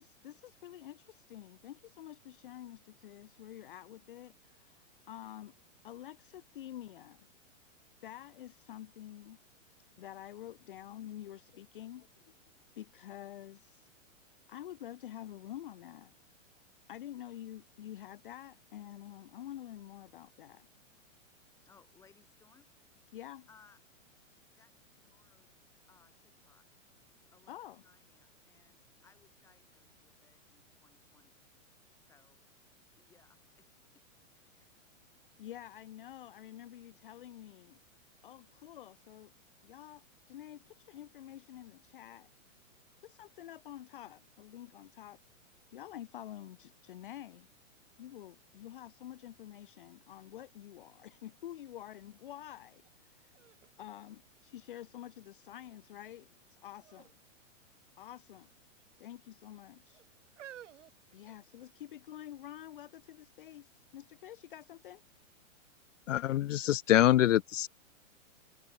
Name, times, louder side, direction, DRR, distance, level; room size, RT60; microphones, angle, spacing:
voice 1, 0.0-5.5 5.8-7.3 8.0-9.4 10.0-12.3 12.8-13.9 14.5-16.1 16.9-20.7 23.1-23.5 27.5-27.8 35.4-37.8 38.2-39.3 39.6-42.3 43.0-45.2 45.7-47.5 48.0-53.4 53.8-57.1 58.0-58.5 59.0-60.0 61.1-65.0, left 12 dB, 40° left, 0.9 m, -48 dB
voice 2, 21.7-22.7 23.5-23.8 24.6-26.7 27.3-27.6 27.8-31.4 32.0-32.5 32.9-33.7 33.9-34.0 34.3-34.8, left 6 dB, 5° left, 3.5 m, -66 dB
sound 1, 52.8-52.9 53.3-54.9 55.5-56.0 56.8-57.2 57.4-57.6 58.5-59.1 59.8-61.9 62.6-62.7, right 11 dB, 65° right, 1.6 m, -55 dB
voice 3, 66.1-67.7, left 13 dB, 70° left, 0.6 m, -25 dB
hypercardioid pair, 175°, 39 cm